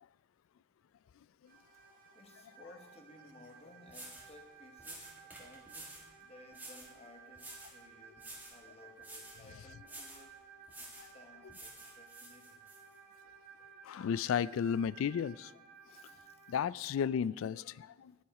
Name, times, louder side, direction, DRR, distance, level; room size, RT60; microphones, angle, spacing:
sound 1, 1.5-16.5, right 6 dB, 40° right, 1.8 m, -57 dB
voice 1, 2.1-10.3 10.8-12.7 15.7-16.8 17.7-18.2, left 2 dB, 30° left, 1.2 m, -59 dB
sound 2, 3.5-3.6 3.9-4.3 4.8-6.1 6.5-6.9 7.4-7.8 8.2-8.6 9.0-9.4 9.8-10.3 10.7-11.1 11.5-12.8, right 2 dB, 10° right, 1.6 m, -50 dB
voice 2, 13.8-15.5 16.5-18.1, left 7 dB, 70° left, 0.3 m, -33 dB
10.5 x 10.0 x 4.8 m
head